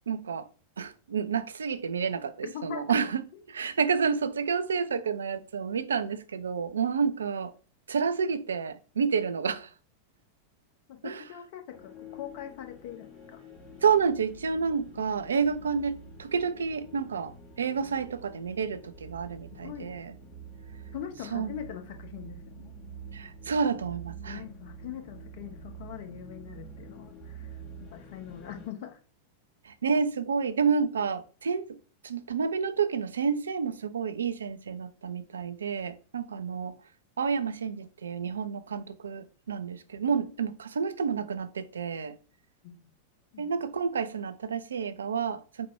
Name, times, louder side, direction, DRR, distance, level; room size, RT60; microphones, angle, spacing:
voice 1, 0.1-0.5 0.8-3.2 3.5-7.5 7.9-9.7 11.0-11.2 13.8-20.1 21.3-21.5 23.1-24.4 29.6-31.8 32.0-36.8 37.2-42.2 43.4-45.7, right 6 dB, 70° right, 0.4 m, -29 dB
voice 2, 2.4-3.0 10.9-13.4 19.5-20.0 20.9-22.8 24.3-29.0 42.6-42.8 43.3-43.5, left 10 dB, 50° left, 0.8 m, -42 dB
sound 1, 11.7-28.7, right 3 dB, 30° left, 2.0 m, -47 dB
4.2 x 2.2 x 4.5 m
figure-of-eight pair, 90°, 0 cm